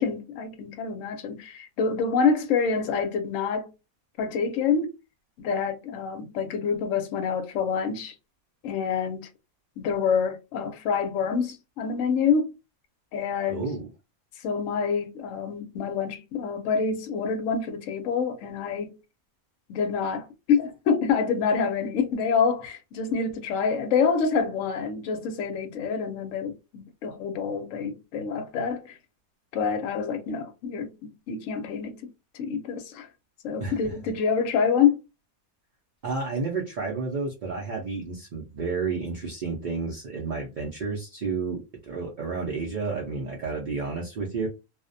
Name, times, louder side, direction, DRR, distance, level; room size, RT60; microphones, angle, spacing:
voice 1, 0.0-3.7 4.2-4.9 5.4-8.1 8.6-9.3 9.8-12.5 13.1-13.6 14.4-19.0 19.7-29.0 29.5-33.1 33.4-35.0, left 6 dB, 70° left, 0.9 m, -27 dB
voice 2, 13.5-13.9 33.6-33.9 36.0-44.5, right 4 dB, 65° right, 0.4 m, -31 dB
2.4 x 2.1 x 2.5 m
omnidirectional pair, 1.5 m